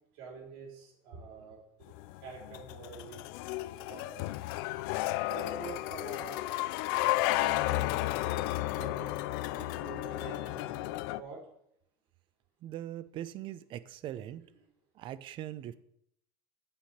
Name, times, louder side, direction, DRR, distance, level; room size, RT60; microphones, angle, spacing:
voice 1, 0.1-1.6 1.9-4.2 5.3-6.4 7.0-9.1 9.5-11.4 14.4-14.6, right 4 dB, 80° right, -2 dB, 4.2 m, -47 dB
sound 1, 1.9-11.2, left 17 dB, 80° left, 0.4 m, -33 dB
voice 2, 12.6-14.5 15.0-15.8, right 12 dB, 45° right, 16 dB, 0.5 m, -41 dB
8.7 x 7.7 x 4.4 m, 0.71 s
cardioid pair, 135°, 11 cm